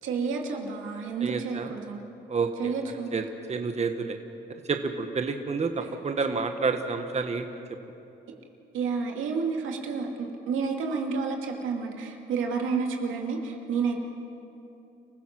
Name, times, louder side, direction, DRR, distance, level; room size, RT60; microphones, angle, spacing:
voice 1, 0.0-2.1 2.6-3.1 5.8-5.9 6.2-6.3 8.7-14.0, right 5 dB, 85° right, 2 dB, 2.5 m, -30 dB
voice 2, 1.2-1.7 2.3-2.5 3.1-3.2 3.5-4.2 4.7-7.5, right 4 dB, 35° right, 6 dB, 1.3 m, -29 dB
29.5 x 15.5 x 6.0 m, 2.9 s
cardioid pair, 90°, 20 cm